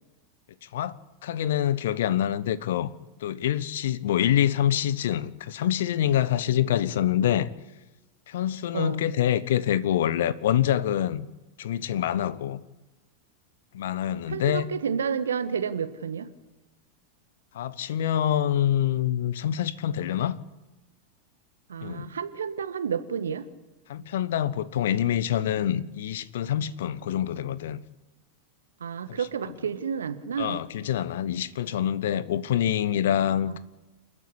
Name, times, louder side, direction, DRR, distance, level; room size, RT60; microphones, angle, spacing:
voice 1, 0.6-0.9 1.2-2.9 3.2-7.5 8.3-11.3 11.6-12.6 13.7-14.7 17.5-20.4 21.8-22.1 23.9-27.8 29.1-29.2 30.4-33.6, left 11 dB, 60° left, 0.9 m, -26 dB
voice 2, 8.7-9.1 14.1-16.3 21.7-23.5 28.8-30.6 33.5-33.6, right 7 dB, 65° right, 1.4 m, -30 dB
29.0 x 10.0 x 9.9 m
figure-of-eight pair, 90°, 0 cm